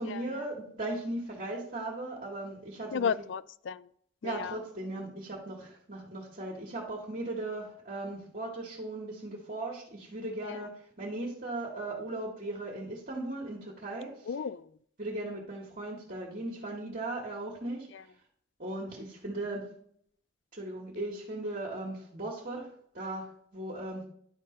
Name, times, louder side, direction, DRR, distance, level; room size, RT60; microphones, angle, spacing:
voice 1, 0.0-3.1 4.2-14.3 15.0-17.9 18.6-19.7 20.5-22.7 22.9-24.1, right 2 dB, 45° right, 2.0 m, -37 dB
voice 2, 2.9-3.9 4.2-4.6 10.5-10.6 14.2-14.8 17.9-18.0, left 6 dB, 80° left, 0.4 m, -34 dB
11.0 x 3.7 x 5.3 m
head